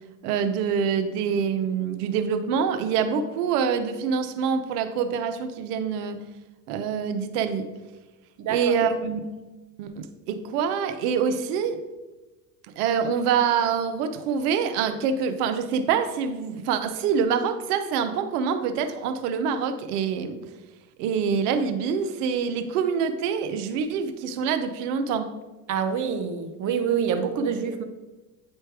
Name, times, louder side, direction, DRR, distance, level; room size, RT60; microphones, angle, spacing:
voice 1, 0.2-6.2 6.7-7.7 8.5-9.3 9.8-11.8 12.8-20.4 21.0-25.3, right 6 dB, 75° right, 9 dB, 0.9 m, -25 dB
voice 2, 8.4-8.7 25.7-27.8, right 7 dB, 40° right, 7 dB, 0.9 m, -26 dB
9.0 x 3.3 x 4.7 m, 1.2 s
hypercardioid pair, 95°, 47 cm